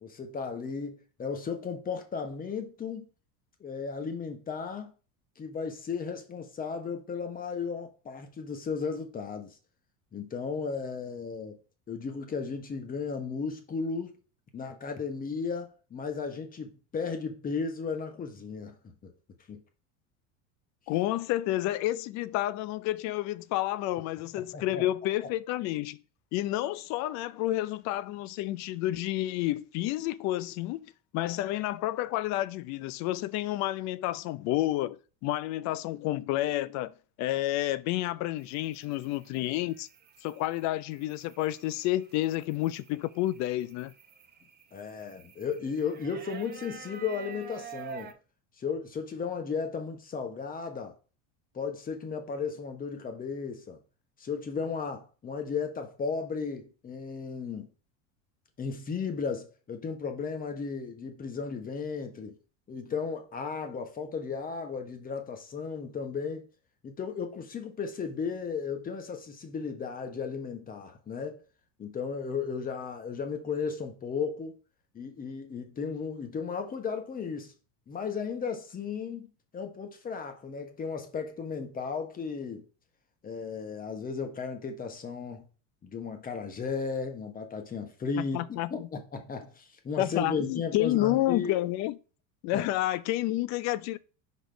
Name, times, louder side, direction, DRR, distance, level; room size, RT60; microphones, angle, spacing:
voice 1, 0.0-3.1 3.6-4.9 5.4-9.6 10.1-11.6 11.9-14.1 14.5-19.1 19.5-19.6 24.5-24.8 44.7-48.1 48.6-51.0 51.5-53.8 54.2-57.7 58.6-62.4 62.7-66.5 66.8-71.4 71.8-74.6 74.9-77.5 77.9-79.3 79.5-82.6 83.2-85.4 85.8-91.6 92.5-92.7, left 5 dB, 20° left, 1.2 m, -35 dB
voice 2, 20.9-26.0 26.3-30.9 31.1-36.9 37.2-39.9 40.2-43.9 88.2-88.9 90.0-91.9 92.4-94.0, left 15 dB, 45° left, 0.5 m, -30 dB
sound 1, 38.4-48.1, right 7 dB, 25° right, 0.9 m, -49 dB
5.1 x 4.1 x 5.1 m
supercardioid pair, 130°, 38 cm